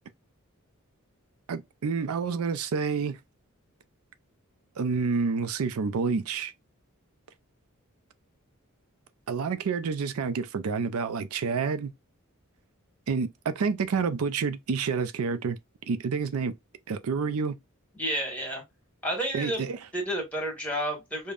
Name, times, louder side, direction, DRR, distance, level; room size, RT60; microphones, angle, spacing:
voice 1, 1.5-3.2 4.8-6.5 9.3-11.9 13.1-15.6 15.9-16.5 16.9-17.6 19.3-19.8, right 5 dB, 80° right, 0.4 m, -28 dB
voice 2, 17.9-18.6 19.0-19.6 19.9-21.3, equal, 5° left, 1.5 m, -30 dB
5.1 x 2.2 x 2.4 m
head